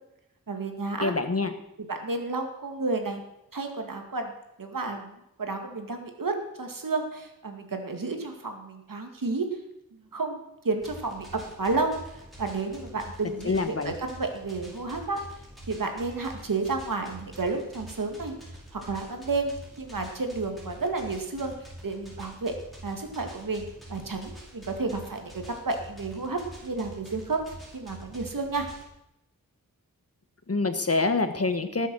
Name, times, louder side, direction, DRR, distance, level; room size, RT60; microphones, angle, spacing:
voice 1, 0.5-1.1 1.9-3.2 3.5-4.3 4.6-9.5 10.1-10.4 10.6-12.0 12.4-15.2 15.7-18.3 18.7-21.5 21.8-22.5 22.8-27.4 27.7-28.7, right 3 dB, 70° right, 4 dB, 2.2 m, -31 dB
voice 2, 1.0-1.5 13.4-13.9 30.5-31.9, left 3 dB, 45° left, 8 dB, 1.4 m, -26 dB
sound 1, 10.8-28.8, right 1 dB, ahead, 5.6 m, -46 dB
19.0 x 7.2 x 6.3 m, 0.86 s
wide cardioid pair, 70°, 34 cm